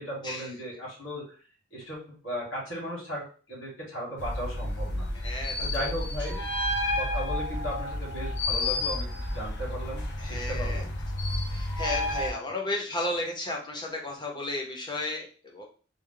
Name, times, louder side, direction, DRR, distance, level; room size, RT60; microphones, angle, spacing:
voice 1, 0.0-1.3 1.7-5.1 5.6-6.4 7.0-10.9, equal, 85° left, -6 dB, 1.9 m, -36 dB
sound 1, 4.2-12.3, left 1 dB, 60° left, 0.7 m, -31 dB
voice 2, 5.1-5.9 6.3-6.4 10.2-10.9 11.5-15.6, left 2 dB, 25° left, 0 dB, 0.9 m, -34 dB
3.3 x 2.3 x 3.8 m, 0.39 s
head